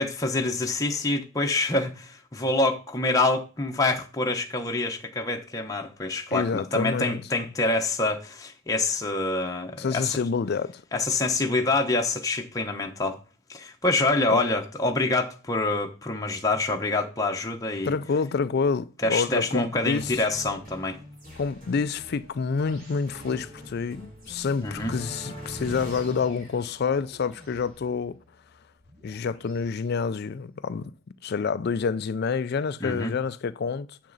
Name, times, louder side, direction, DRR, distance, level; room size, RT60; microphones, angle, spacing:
voice 1, 0.0-10.2 10.9-13.2 13.5-17.9 19.0-21.0 24.6-24.9 32.8-33.1, left 2 dB, 15° left, 0.9 m, -26 dB
voice 2, 6.3-7.2 9.8-10.8 14.3-14.4 17.8-20.1 21.4-28.2 29.0-30.9 31.2-34.0, left 5 dB, 50° left, 0.4 m, -28 dB
sound 1, 20.0-29.7, equal, 45° right, 4.7 m, -43 dB
9.1 x 6.7 x 4.0 m
head